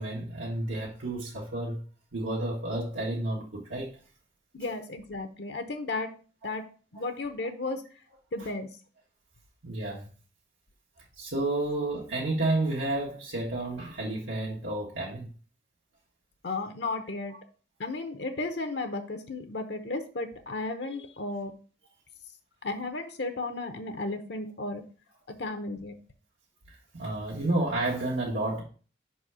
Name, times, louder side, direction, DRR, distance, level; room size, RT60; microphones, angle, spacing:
voice 1, 0.0-1.8 2.1-3.9 6.4-6.5 6.9-7.0 9.6-10.1 11.2-15.3 26.7-28.6, right 2 dB, 85° right, 1.6 m, -31 dB
voice 2, 4.5-6.1 6.4-6.6 6.9-7.8 8.3-8.7 16.4-17.3 17.8-21.5 22.6-24.8 25.4-26.0, left 3 dB, 60° left, 0.8 m, -34 dB
5.6 x 4.2 x 6.1 m
head